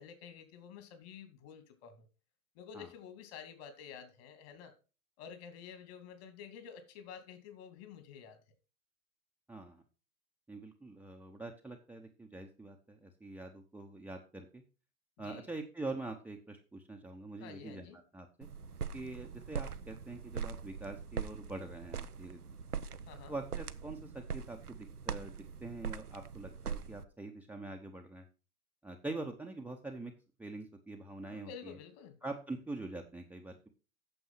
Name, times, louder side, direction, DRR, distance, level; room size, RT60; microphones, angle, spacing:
voice 1, 0.0-2.1 2.6-4.7 5.2-8.4 15.2-15.5 17.4-18.0 23.1-23.3 31.3-32.2, left 7 dB, 45° left, 8 dB, 2.7 m, -50 dB
voice 2, 9.5-9.8 10.5-14.6 15.2-17.9 18.1-18.5 18.9-22.4 23.3-28.3 28.8-30.1 30.4-31.8 32.2-33.7, right 2 dB, 5° right, 4 dB, 0.9 m, -44 dB
sound 1, 18.4-27.0, right 6 dB, 90° right, 0.7 m, -42 dB
9.0 x 7.2 x 5.8 m, 0.33 s
figure-of-eight pair, 95°, 44 cm